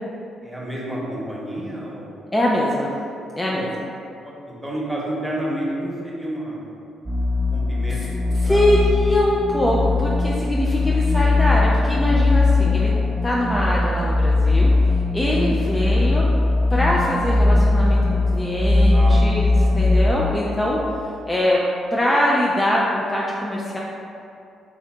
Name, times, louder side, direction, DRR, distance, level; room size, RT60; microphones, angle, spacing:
voice 1, 0.4-2.3 3.5-3.6 4.2-6.7 7.5-8.6 14.7-14.8 18.9-19.2 20.5-20.6, right 1 dB, 5° right, -5 dB, 1.1 m, -30 dB
voice 2, 2.3-2.9 3.3-3.7 8.4-12.9 13.2-14.7 15.1-16.2 16.7-19.5 19.7-20.8 21.3-21.6 21.9-23.8, left 1 dB, 20° left, -4 dB, 0.4 m, -22 dB
sound 1, 7.1-20.2, left 2 dB, 35° right, 0.5 m, -19 dB
3.7 x 2.7 x 3.3 m, 2.6 s
hypercardioid pair, 50°, 0 cm